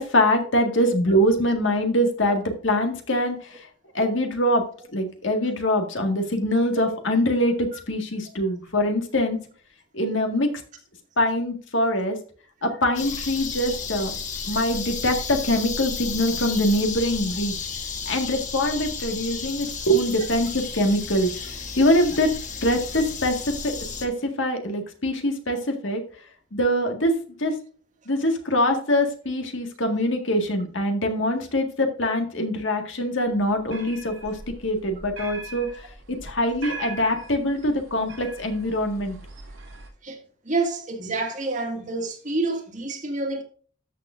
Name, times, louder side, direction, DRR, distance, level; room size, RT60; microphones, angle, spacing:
voice 1, 0.0-3.7 3.9-4.6 4.9-9.4 9.9-10.5 11.2-12.2 12.6-14.1 14.5-17.5 18.1-22.3 22.6-23.7 24.0-24.1 24.4-26.0 26.5-27.5 28.1-34.4 34.6-35.7 36.2-39.2, left 1 dB, 65° left, 1.8 m, -23 dB
sound 1, 12.9-24.1, left 5 dB, 40° left, 1.3 m, -33 dB
sound 2, 33.3-39.9, right 2 dB, 75° right, 2.4 m, -41 dB
voice 2, 40.4-43.4, right 3 dB, 40° right, 1.8 m, -28 dB
13.0 x 6.6 x 2.5 m
head